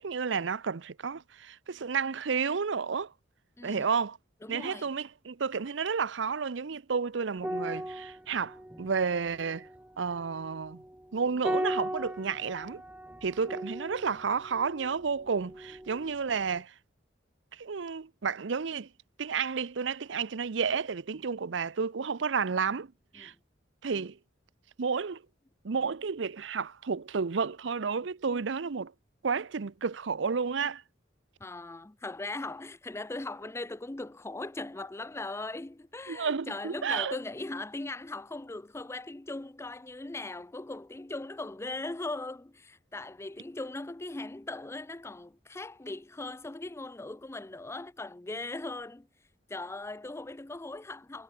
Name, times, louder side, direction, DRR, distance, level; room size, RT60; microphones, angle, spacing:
voice 1, 0.0-3.1 3.6-4.2 4.5-9.7 10.0-10.8 11.1-12.8 13.2-16.7 17.6-18.9 19.2-22.9 23.1-23.3 23.8-24.2 24.8-25.2 25.6-28.9 29.2-30.8 36.1-37.2, right 5 dB, 75° right, 0.6 m, -31 dB
voice 2, 3.6-3.9 4.4-4.9 23.2-23.4 31.4-49.1 49.5-51.2, left 2 dB, 15° left, 0.5 m, -39 dB
sound 1, 7.4-16.1 16.4-16.6, right 1 dB, 10° right, 1.0 m, -38 dB
head